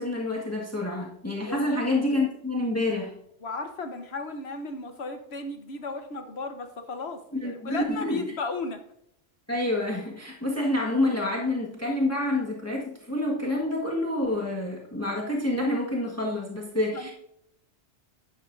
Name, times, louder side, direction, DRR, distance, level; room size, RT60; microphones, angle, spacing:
voice 1, 0.0-3.2 7.4-8.3 9.5-17.1, left 1 dB, 15° left, -2 dB, 1.6 m, -28 dB
voice 2, 1.4-1.9 3.4-8.8 16.9-17.1, left 3 dB, 65° left, 7 dB, 1.4 m, -35 dB
11.0 x 11.0 x 2.6 m, 0.74 s
omnidirectional pair, 1.2 m